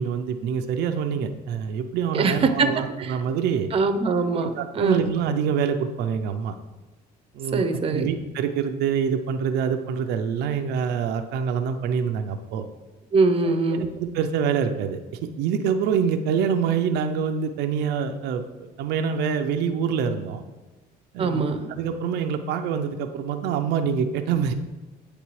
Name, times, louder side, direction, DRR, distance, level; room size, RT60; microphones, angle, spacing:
voice 1, 0.0-3.7 4.4-6.5 7.3-7.7 7.9-12.7 13.4-20.4 21.1-24.5, right 7 dB, 85° right, 7 dB, 0.5 m, -26 dB
voice 2, 2.1-2.7 3.0-3.1 3.7-5.1 7.5-8.1 13.1-13.8 21.2-21.7, right 4 dB, 35° right, 8 dB, 0.6 m, -22 dB
9.2 x 3.3 x 3.1 m, 1.2 s
cardioid pair, 110°, 17 cm